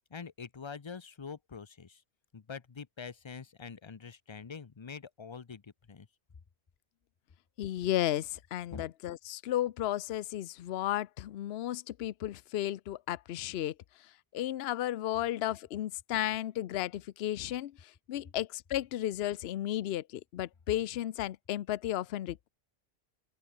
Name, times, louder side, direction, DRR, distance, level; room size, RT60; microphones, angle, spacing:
voice 1, 0.1-2.0 2.3-6.1 8.7-8.8, left 5 dB, 30° left, 0.6 m, -45 dB
voice 2, 7.6-13.7 14.3-22.5, left 13 dB, 70° left, 0.8 m, -34 dB
open air
omnidirectional pair, 1.1 m